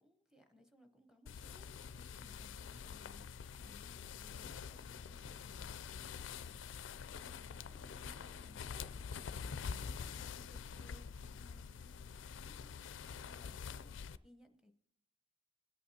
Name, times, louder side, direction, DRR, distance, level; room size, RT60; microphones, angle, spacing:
voice 1, 0.0-14.7, left 1 dB, 5° right, 5 dB, 0.8 m, -65 dB
sound 1, 1.3-14.2, left 6 dB, 65° left, 0.4 m, -46 dB
Bass guitar, 7.8-12.1, right 2 dB, 35° right, 0.5 m, -68 dB
22.0 x 8.5 x 2.8 m, 0.84 s
head